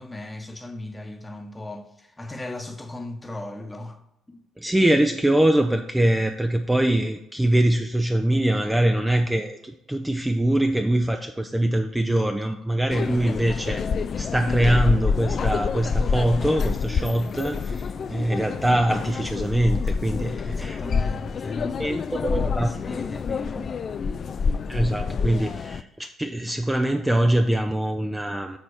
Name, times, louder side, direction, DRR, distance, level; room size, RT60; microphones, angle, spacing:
voice 1, 0.0-4.0 4.3-4.4 20.4-23.7, left 1 dB, 15° left, 1.1 m, -37 dB
voice 2, 4.6-13.9 14.2-20.8 21.8-22.7 24.7-28.6, right 1 dB, 10° right, 0.6 m, -23 dB
sound 1, 12.9-25.8, left 5 dB, 45° left, 0.3 m, -27 dB
6.9 x 4.2 x 6.4 m
hypercardioid pair, 50°, 0 cm